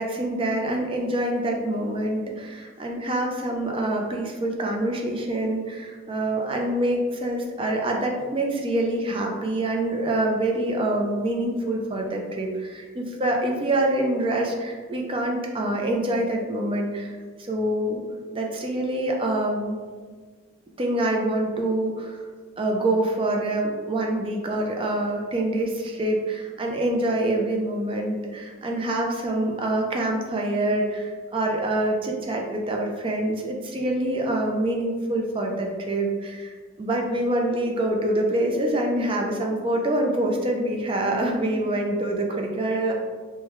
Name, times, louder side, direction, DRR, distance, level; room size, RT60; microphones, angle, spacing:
voice 1, 0.0-18.0 18.3-19.8 20.8-22.2 22.6-42.9, right 1 dB, 25° right, 0 dB, 0.4 m, -26 dB
3.3 x 2.2 x 3.0 m, 1.5 s
head